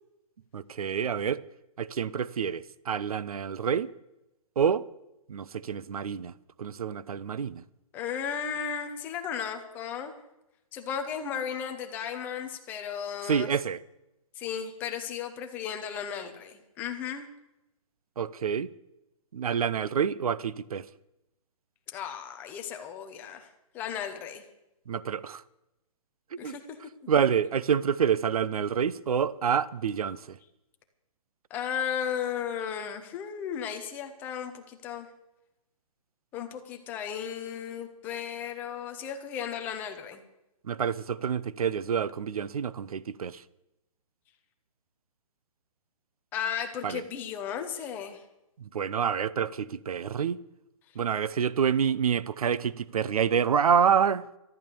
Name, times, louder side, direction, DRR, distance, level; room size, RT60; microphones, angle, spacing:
voice 1, 0.5-1.4 1.8-3.9 4.6-4.8 5.3-6.3 6.6-7.6 13.2-13.8 18.2-18.7 19.3-20.9 24.9-25.4 26.4-26.5 27.1-30.4 40.6-43.4 46.8-47.0 48.6-50.4 50.9-54.2, right 7 dB, 80° right, 0.7 m, -27 dB
voice 2, 7.9-10.2 10.7-13.5 14.4-17.3 21.9-23.5 23.7-24.4 26.4-26.8 31.5-35.1 36.3-40.2 46.3-48.2, left 8 dB, 10° left, 0.8 m, -35 dB
14.0 x 11.0 x 6.9 m
hypercardioid pair, 170°, 18 cm